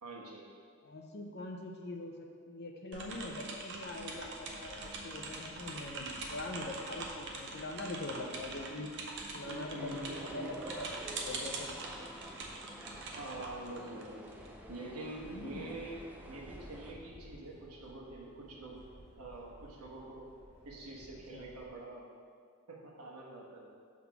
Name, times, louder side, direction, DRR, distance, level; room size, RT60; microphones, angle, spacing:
voice 1, 0.0-0.5 9.4-10.6 13.1-14.4 14.7-18.8 19.2-20.2 20.6-22.1 22.7-23.7, right 2 dB, 85° right, -3 dB, 1.3 m, -45 dB
voice 2, 0.8-8.9 9.3-11.9 15.3-15.7 21.3-21.5, left 2 dB, 45° left, 2 dB, 0.7 m, -43 dB
sound 1, 2.9-14.5, right 3 dB, 55° right, 0.7 m, -44 dB
sound 2, 3.8-21.7, equal, 25° right, 1.1 m, -57 dB
sound 3, 9.8-16.9, right 1 dB, 5° right, 0.3 m, -50 dB
5.8 x 3.6 x 6.0 m, 2.1 s
head